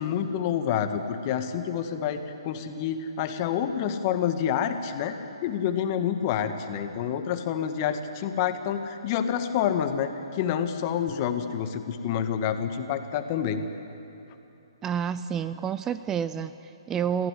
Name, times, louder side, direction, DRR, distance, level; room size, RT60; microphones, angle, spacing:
voice 1, 0.0-5.1 5.4-13.6, left 8 dB, 35° left, 8 dB, 1.6 m, -28 dB
voice 2, 14.8-17.3, right 8 dB, 15° right, 13 dB, 0.4 m, -29 dB
23.0 x 16.0 x 9.9 m, 2.8 s
hypercardioid pair, 135°, 3 cm